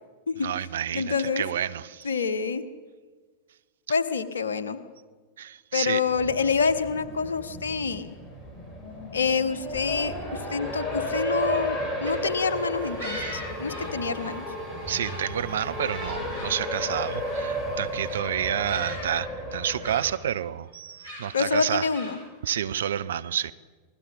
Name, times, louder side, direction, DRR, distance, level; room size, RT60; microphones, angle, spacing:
voice 1, 0.4-2.1 5.4-6.0 14.9-21.9 22.4-23.5, right 10 dB, 60° right, 13 dB, 0.6 m, -29 dB
voice 2, 0.9-1.4 2.0-2.6 3.9-4.8 5.7-8.2 9.1-14.5 21.3-22.2, left 5 dB, 70° left, 12 dB, 1.2 m, -27 dB
Race car auto racing, 6.1-20.1, left 1 dB, 15° left, 4.4 m, -33 dB
sound 1, 11.6-14.7 14.9-16.6 16.9-17.5 17.9-18.2 18.6-19.2 19.5-20.4 21.0-22.5, equal, 80° right, 8.0 m, -42 dB
sound 2, 12.3-18.1, right 6 dB, 30° right, 3.2 m, -46 dB
28.0 x 20.0 x 5.4 m, 1.4 s
figure-of-eight pair, 90°, 0 cm